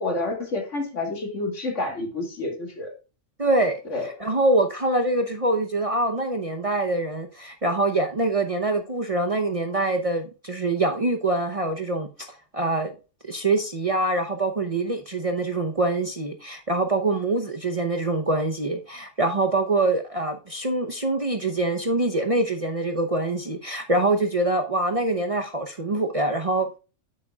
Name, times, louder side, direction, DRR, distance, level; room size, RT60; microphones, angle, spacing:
voice 1, 0.0-2.9 3.9-4.1, left 2 dB, 70° left, 2.5 m, -29 dB
voice 2, 3.4-12.3 12.5-12.9 13.2-26.7, right 2 dB, 35° right, 0.7 m, -24 dB
9.2 x 8.7 x 2.3 m
omnidirectional pair, 1.3 m